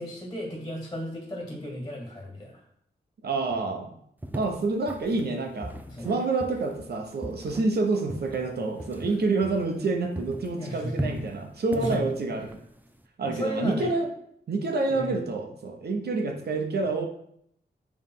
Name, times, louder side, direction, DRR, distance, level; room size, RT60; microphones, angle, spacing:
voice 1, 0.0-2.6 5.9-6.1 9.0-9.1 10.5-11.2 11.7-12.0 13.2-13.9 14.9-15.1, equal, 20° left, -1 dB, 2.0 m, -34 dB
voice 2, 3.2-3.9 4.3-5.7 6.0-12.5 13.2-14.1 14.5-17.1, right 3 dB, 65° right, 4 dB, 1.1 m, -28 dB
sound 1, 4.2-9.9 10.1-13.1, right 1 dB, 10° right, 0.5 m, -39 dB
7.3 x 3.5 x 5.6 m, 0.70 s
wide cardioid pair, 165°, 18 cm